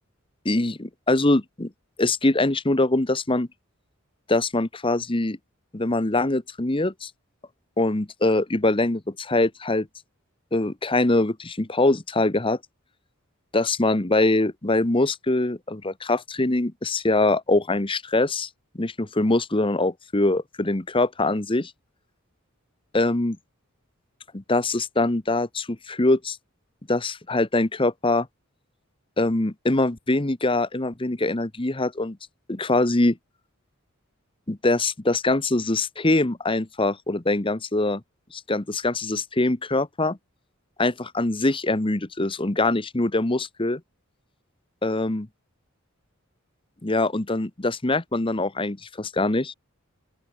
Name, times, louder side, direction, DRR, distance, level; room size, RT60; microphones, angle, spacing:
voice 1, 0.4-1.7 2.0-3.5 4.3-5.4 5.7-7.1 7.8-9.9 10.5-12.6 13.5-18.5 18.7-21.7 22.9-23.4 24.3-26.4 26.9-28.3 29.2-32.2 32.5-33.2 34.5-38.0 38.3-40.2 40.8-43.8 44.8-45.3 46.8-49.5, left 2 dB, 25° left, 1.1 m, -23 dB
open air
head